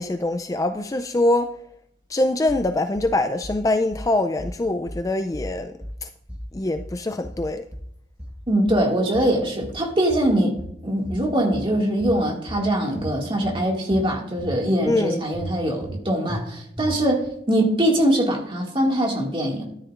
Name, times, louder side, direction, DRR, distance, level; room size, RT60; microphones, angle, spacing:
voice 1, 0.0-1.6 2.1-5.7 6.0-6.1 6.5-7.6 14.9-15.3, left 2 dB, 20° left, 0.3 m, -23 dB
sound 1, 2.5-3.1 3.4-4.1 4.4-5.1 5.3-6.0 6.3-7.0 7.2-7.9 8.2-8.9 9.1-9.8 10.1-10.8 11.0-11.7 12.0-12.7 13.0-13.6 13.9-14.6 14.8-15.0 15.3-16.0 16.3-16.4 16.8-17.3, equal, 5° right, 1.2 m, -35 dB
voice 2, 8.5-10.6 10.8-19.7, right 1 dB, 30° right, 2.1 m, -22 dB
13.0 x 9.8 x 2.5 m
head